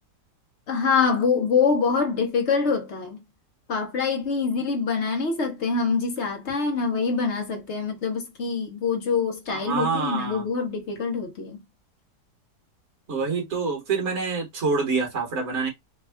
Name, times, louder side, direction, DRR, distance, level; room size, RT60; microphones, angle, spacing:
voice 1, 0.7-3.2 3.7-11.6, left 5 dB, 55° left, 0.8 m, -25 dB
voice 2, 9.5-10.4 13.1-15.7, right 4 dB, 40° right, 1.3 m, -26 dB
3.4 x 2.3 x 3.4 m
omnidirectional pair, 2.0 m